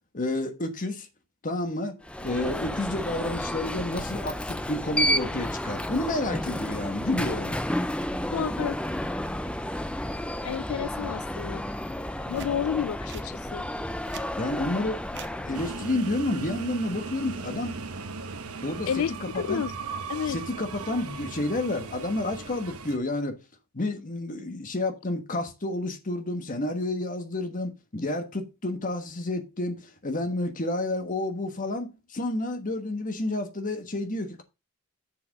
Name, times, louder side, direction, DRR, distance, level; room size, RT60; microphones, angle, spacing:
voice 1, 0.1-1.1 1.4-7.6 14.4-17.8 18.6-19.6 20.2-23.4 23.7-34.4, left 2 dB, 40° left, 1.3 m, -30 dB
Alarm, 2.0-16.0, left 1 dB, 5° left, 0.4 m, -31 dB
voice 2, 8.3-8.8 10.4-11.6 12.3-13.7 18.9-19.7 20.1-20.4, left 8 dB, 70° left, 0.3 m, -30 dB
sound 1, 12.2-12.5 13.1-13.3 13.9-14.3 15.1-15.3 16.6-16.9, right 8 dB, 55° right, 0.8 m, -44 dB
sound 2, 15.5-23.0, right 4 dB, 90° right, 1.0 m, -38 dB
6.9 x 5.8 x 5.2 m
head